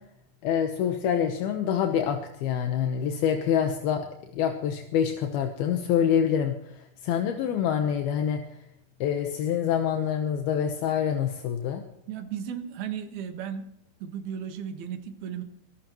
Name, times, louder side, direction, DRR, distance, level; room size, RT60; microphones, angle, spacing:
voice 1, 0.4-4.1 4.3-8.4 9.0-11.8, left 8 dB, 80° left, 5 dB, 3.0 m, -26 dB
voice 2, 12.1-13.7 14.0-15.4, right 8 dB, 80° right, 7 dB, 3.4 m, -35 dB
25.0 x 14.5 x 3.1 m, 0.77 s
omnidirectional pair, 4.4 m